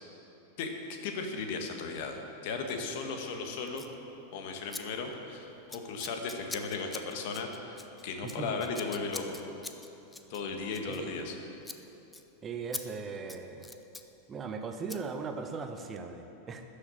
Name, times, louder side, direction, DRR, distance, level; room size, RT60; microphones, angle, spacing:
voice 1, 0.6-3.9 4.3-9.4 10.3-11.3, left 4 dB, 50° left, 4 dB, 1.5 m, -36 dB
Scissors, 3.7-3.9 4.7-4.8 5.1-5.3 5.7-11.4 11.6-11.8 12.1-12.2 12.7-12.8 13.2-14.1 14.9-15.0, left 3 dB, 10° left, 0.6 m, -44 dB
voice 2, 8.2-8.6 10.9-11.2 12.4-13.7 14.3-16.6, right 5 dB, 25° right, 6 dB, 0.9 m, -38 dB
13.0 x 6.7 x 8.7 m, 3.0 s
figure-of-eight pair, 90°, 0 cm